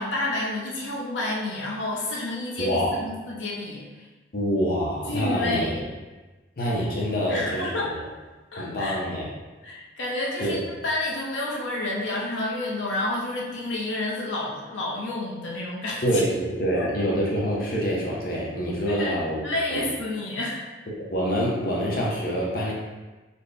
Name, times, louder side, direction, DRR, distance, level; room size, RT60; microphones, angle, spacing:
voice 1, 0.0-4.1 5.1-5.8 7.3-7.9 8.5-9.0 9.6-16.2 16.8-16.9 18.9-19.2 19.4-20.6, left 2 dB, 90° left, -3 dB, 0.7 m, -29 dB
voice 2, 2.6-2.9 4.3-5.7 6.6-8.0 8.6-9.3 10.4-10.6 16.0-19.4 19.7-19.8 20.9-22.7, equal, 50° left, -4 dB, 0.7 m, -26 dB
4.2 x 2.1 x 3.3 m, 1.2 s
head